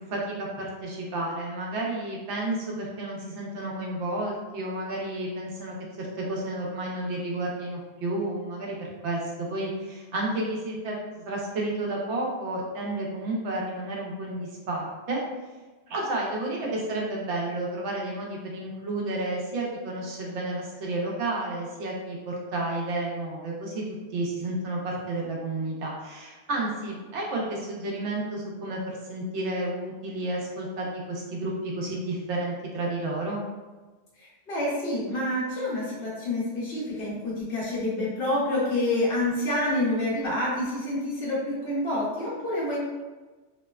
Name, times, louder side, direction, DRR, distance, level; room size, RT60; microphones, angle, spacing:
voice 1, 0.1-11.0 11.2-15.2 15.9-23.8 24.1-33.4, right 2 dB, 90° right, -2 dB, 0.9 m, -31 dB
voice 2, 34.2-42.8, left 1 dB, 60° left, -7 dB, 1.0 m, -28 dB
2.8 x 2.1 x 2.2 m, 1.3 s
omnidirectional pair, 1.1 m